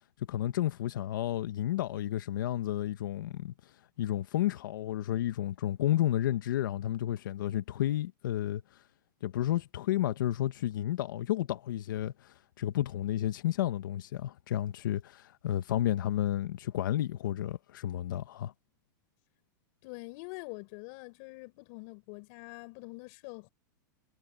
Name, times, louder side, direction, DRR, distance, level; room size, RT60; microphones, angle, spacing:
voice 1, 0.3-3.5 4.0-8.8 9.2-18.5, left 12 dB, 80° left, 1.5 m, -31 dB
voice 2, 19.8-23.5, left 29 dB, 55° left, 5.8 m, -45 dB
supercardioid pair, 135°, 11 cm